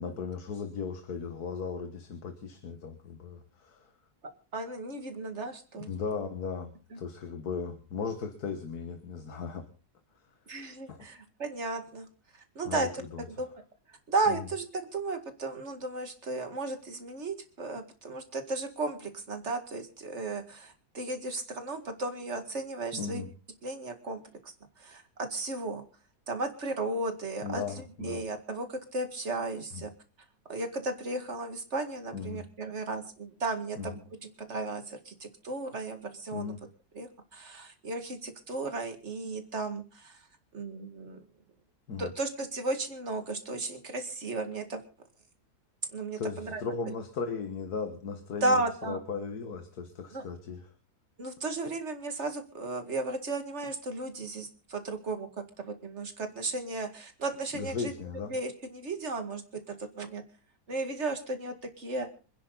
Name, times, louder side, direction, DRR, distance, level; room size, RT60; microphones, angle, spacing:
voice 1, 0.0-3.9 5.8-9.7 10.9-11.0 12.7-13.2 14.3-14.4 22.9-23.3 27.4-28.2 29.7-29.8 32.1-32.4 33.8-34.0 36.3-36.6 41.9-42.1 46.2-50.7 57.5-58.4, left 5 dB, 75° left, 7 dB, 2.0 m, -37 dB
voice 2, 4.5-5.9 6.9-7.0 10.5-12.1 12.3-12.9 13.4-13.6 14.1-23.2 23.6-24.5 24.8-25.9 26.3-27.6 28.0-29.9 30.5-36.5 36.9-40.2 40.5-41.2 42.0-44.8 45.9-46.7 48.4-49.0 50.1-50.2 51.2-55.3 55.6-57.9 58.3-60.2 60.7-62.1, right 2 dB, 45° right, 6 dB, 2.4 m, -34 dB
27.0 x 10.0 x 4.0 m, 0.37 s
omnidirectional pair, 1.7 m